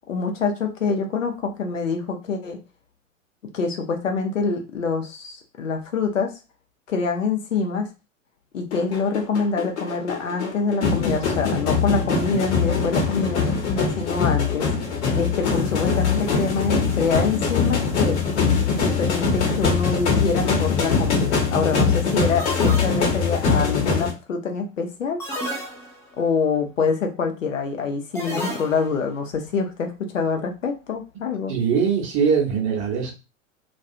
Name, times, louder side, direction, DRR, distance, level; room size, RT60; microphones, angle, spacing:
voice 1, 0.1-2.6 3.5-6.3 6.9-7.9 8.5-13.4 14.0-14.7 15.1-18.2 18.8-25.2 26.2-31.5, left 5 dB, 75° left, 4 dB, 0.7 m, -25 dB
sound 1, 8.7-24.1, left 5 dB, 60° left, 1.0 m, -22 dB
sound 2, 20.4-20.7 22.4-23.4 25.2-26.2 28.2-29.1, equal, 5° left, 0.4 m, -32 dB
voice 2, 31.5-33.1, right 6 dB, 30° right, 0 dB, 0.8 m, -21 dB
2.3 x 2.3 x 2.7 m, 0.29 s
figure-of-eight pair, 90°, 39 cm